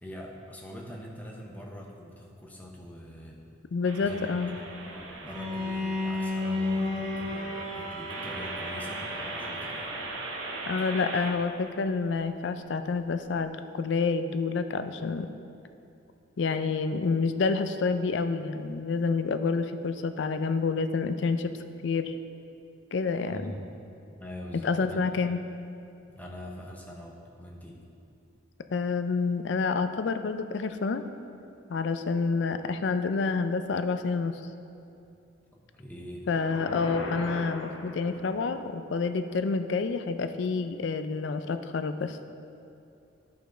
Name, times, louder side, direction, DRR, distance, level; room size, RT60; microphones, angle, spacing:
voice 1, 0.0-3.4 4.0-4.3 4.6-9.9 23.3-23.7 24.0-25.3 26.1-27.8 35.5-36.2, left 1 dB, 10° left, -1 dB, 0.8 m, -43 dB
voice 2, 3.7-4.6 10.7-15.3 16.4-21.5 21.8-22.1 22.9-23.5 24.6-25.4 28.7-31.0 31.7-34.4 36.3-42.2, left 4 dB, 60° left, 9 dB, 0.4 m, -28 dB
sound 1, 3.8-11.3, right 2 dB, 85° right, 0.9 m, -39 dB
Bowed string instrument, 5.2-10.2, left 2 dB, 45° right, 1.3 m, -33 dB
sound 2, 36.3-38.6, left 2 dB, 85° left, 0.8 m, -38 dB
11.0 x 5.3 x 3.8 m, 2.7 s
head